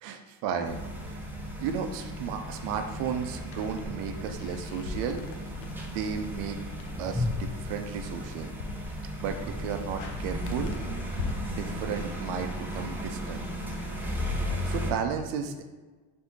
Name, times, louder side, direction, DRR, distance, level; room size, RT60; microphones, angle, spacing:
voice 1, 0.0-1.2 1.6-6.6 7.0-8.5 9.2-10.7 11.5-13.5 14.6-15.6, right 7 dB, 80° right, 6 dB, 0.6 m, -34 dB
sound 1, 0.6-14.9, equal, 5° right, 0.3 m, -35 dB
sound 2, 3.5-13.3, left 3 dB, 90° left, 0.7 m, -42 dB
4.0 x 2.7 x 3.5 m, 1.3 s
cardioid pair, 135°, 45 cm